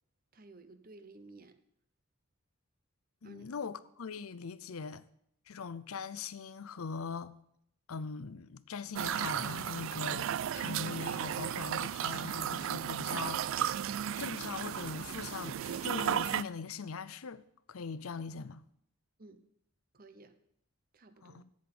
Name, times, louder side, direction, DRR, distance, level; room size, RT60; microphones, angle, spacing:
voice 1, 0.3-1.6 3.2-3.5 19.2-19.4 19.9-20.4 20.9-21.4, right 2 dB, 45° right, 0.9 m, -54 dB
voice 2, 3.2-5.0 5.5-7.3 7.9-13.9 14.2-17.4 17.7-18.6 21.2-21.5, left 5 dB, 85° left, 0.6 m, -41 dB
sound 1, 9.0-16.4, right 9 dB, 65° right, 0.3 m, -34 dB
8.4 x 7.8 x 8.7 m
head